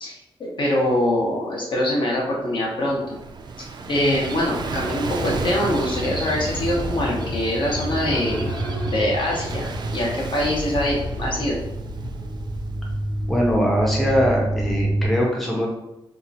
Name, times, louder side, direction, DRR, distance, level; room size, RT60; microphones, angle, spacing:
voice 1, 0.0-3.2 3.9-8.5 8.8-11.6, left 1 dB, 55° left, -2 dB, 0.9 m, -24 dB
Gull seagull / Waves surf, 2.8-13.3, right 4 dB, 50° right, 0.3 m, -35 dB
sound 1, 3.8-12.6, equal, 90° left, 1.1 m, -31 dB
sound 2, 9.4-15.1, right 1 dB, 30° left, 0.8 m, -28 dB
voice 2, 13.3-15.7, equal, ahead, -3 dB, 0.5 m, -21 dB
2.8 x 2.4 x 4.0 m, 0.90 s
wide cardioid pair, 145°, 10 cm